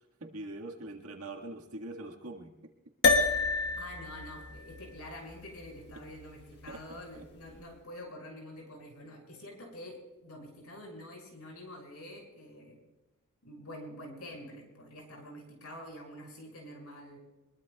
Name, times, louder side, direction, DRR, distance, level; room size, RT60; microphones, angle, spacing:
voice 1, 0.2-2.5 6.7-7.2, right 2 dB, 85° right, 3 dB, 1.8 m, -43 dB
sound 1, 3.0-7.6, left 3 dB, 50° left, 1.4 m, -31 dB
voice 2, 3.7-12.8 13.4-17.2, left 1 dB, 90° left, 0 dB, 6.4 m, -47 dB
23.5 x 21.5 x 2.4 m, 1.1 s
head